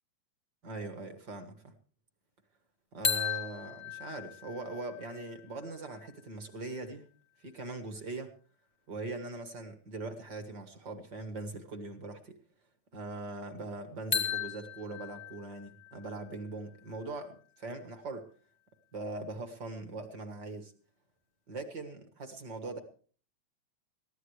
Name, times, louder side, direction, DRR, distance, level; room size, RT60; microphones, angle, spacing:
voice 1, 0.6-1.7 2.9-7.1 7.4-8.3 8.9-12.4 12.9-18.3 18.9-20.7 21.5-22.8, right 2 dB, 45° right, 7 dB, 1.8 m, -41 dB
sound 1, 3.0-6.9 14.1-18.0, left 7 dB, 35° left, 0.9 m, -38 dB
21.0 x 15.0 x 3.2 m, 0.42 s
omnidirectional pair, 3.3 m